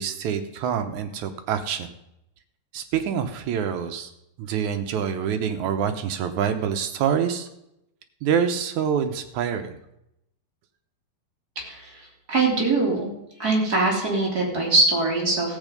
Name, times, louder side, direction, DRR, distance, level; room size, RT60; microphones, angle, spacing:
voice 1, 0.0-1.9 2.7-4.1 4.4-7.5 8.2-9.8, right 8 dB, 75° right, 8 dB, 2.2 m, -26 dB
voice 2, 11.5-11.9 12.3-13.1 13.4-15.6, right 3 dB, 30° right, -2 dB, 3.3 m, -22 dB
15.5 x 8.4 x 5.2 m, 0.81 s
omnidirectional pair, 3.7 m